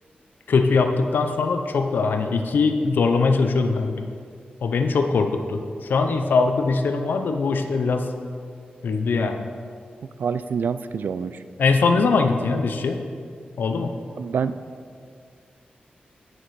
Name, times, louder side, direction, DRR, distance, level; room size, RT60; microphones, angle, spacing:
voice 1, 0.5-4.1 4.6-8.1 8.8-9.5 11.6-13.0 13.6-13.9, left 4 dB, 85° left, 6 dB, 0.5 m, -21 dB
voice 2, 10.2-11.3 14.2-14.5, right 6 dB, 80° right, 13 dB, 0.3 m, -26 dB
9.2 x 6.0 x 4.7 m, 2.1 s
wide cardioid pair, 165°, 3 cm